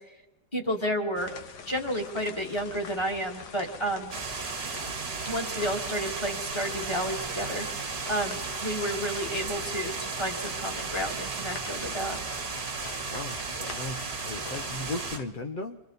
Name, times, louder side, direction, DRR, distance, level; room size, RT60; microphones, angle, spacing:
voice 1, 0.5-1.3 1.7-4.1 5.3-7.7 8.1-12.2, equal, 15° left, 1 dB, 2.0 m, -31 dB
sound 1, 1.2-15.3, left 6 dB, 75° left, 1.5 m, -45 dB
sound 2, 4.1-15.2, right 4 dB, 40° right, 1.5 m, -35 dB
voice 2, 13.1-15.8, left 2 dB, 50° left, 6 dB, 0.6 m, -37 dB
27.5 x 23.0 x 4.0 m, 1.1 s
omnidirectional pair, 1.8 m